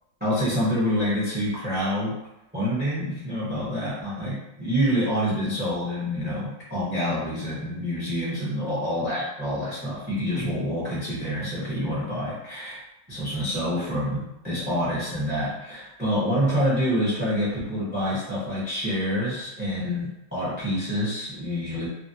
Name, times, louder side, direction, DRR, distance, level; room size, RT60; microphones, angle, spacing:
voice 1, 0.2-2.2 2.5-12.8 13.1-21.9, equal, 15° right, -7 dB, 0.4 m, -27 dB
3.0 x 2.4 x 2.6 m, 0.88 s
omnidirectional pair, 2.0 m